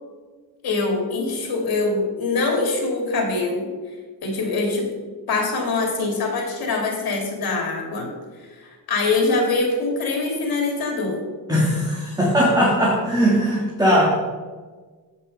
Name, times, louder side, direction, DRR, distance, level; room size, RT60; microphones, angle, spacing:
voice 1, 0.6-3.7 4.2-4.9 5.3-8.1 8.4-11.2, left 3 dB, 65° left, 1 dB, 2.4 m, -23 dB
voice 2, 11.5-14.1, equal, 10° right, -4 dB, 1.7 m, -19 dB
8.4 x 5.5 x 5.3 m, 1.4 s
cardioid pair, 90°, 38 cm